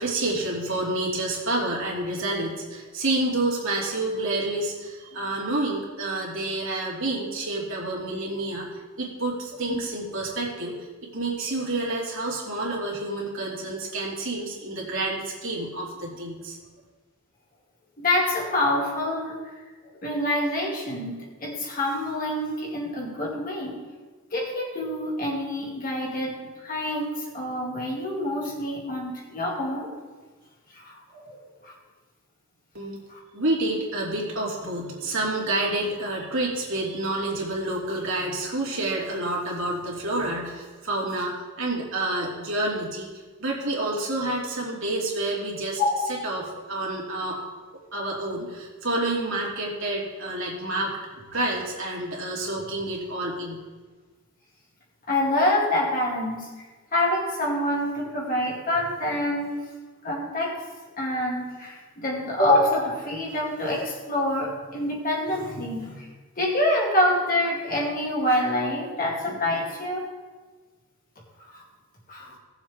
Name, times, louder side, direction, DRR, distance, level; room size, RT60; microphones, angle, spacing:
voice 1, 0.0-8.7 9.0-10.7 11.1-16.6 32.7-33.0 33.3-43.1 43.4-45.8 46.2-47.4 47.9-51.0 51.3-53.5, right 2 dB, 60° right, -3 dB, 2.7 m, -28 dB
voice 2, 18.0-19.4 20.0-23.8 24.3-26.4 26.6-29.9 30.7-31.7 33.1-33.2 45.8-46.1 55.1-56.5 56.9-59.6 60.0-60.6 61.0-66.1 66.4-70.1 71.5-71.6 72.1-72.3, left 1 dB, 40° left, -3 dB, 2.5 m, -26 dB
18.0 x 7.3 x 3.7 m, 1.3 s
head